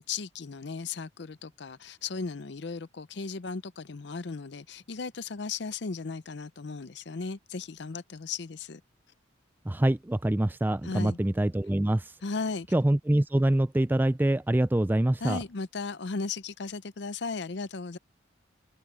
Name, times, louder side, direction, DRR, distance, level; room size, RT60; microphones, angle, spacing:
voice 1, 0.0-8.8 10.8-11.2 12.2-12.7 15.2-18.0, left 4 dB, 55° left, 0.6 m, -36 dB
voice 2, 9.6-12.1 12.7-15.4, right 1 dB, 10° right, 0.3 m, -25 dB
open air
head